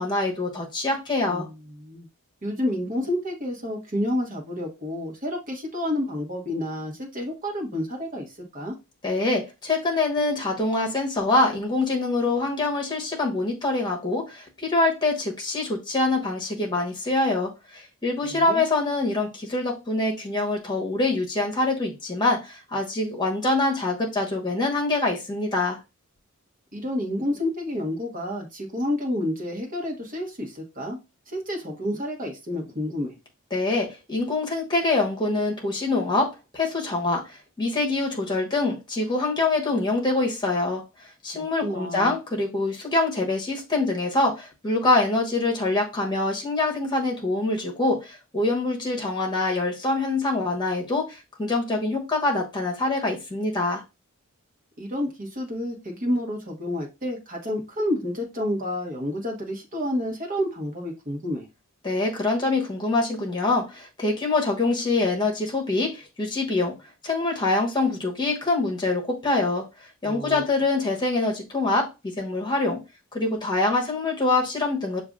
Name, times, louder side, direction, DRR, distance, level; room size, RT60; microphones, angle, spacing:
voice 1, 0.0-1.5 9.0-25.8 33.5-40.8 41.2-53.8 61.8-66.7 67.0-69.6 70.0-72.8 73.1-75.0, left 2 dB, 20° left, 0 dB, 1.2 m, -25 dB
voice 2, 1.3-2.1 2.4-8.3 8.5-8.8 18.3-18.6 26.7-31.0 31.3-33.1 41.3-42.1 54.8-61.5 70.0-70.4, left 1 dB, 40° right, 0 dB, 1.3 m, -29 dB
6.6 x 2.6 x 2.4 m, 0.26 s
head